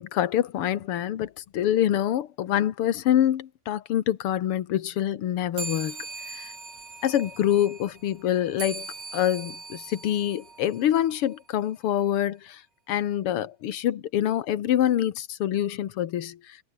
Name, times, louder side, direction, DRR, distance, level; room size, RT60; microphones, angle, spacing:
voice 1, 0.0-6.0 6.3-6.5 7.0-8.9 9.1-12.6 12.9-16.4, left 11 dB, 60° left, 1.5 m, -25 dB
sound 1, 5.5-11.4, right 4 dB, 50° right, 7.3 m, -40 dB
omnidirectional pair, 3.9 m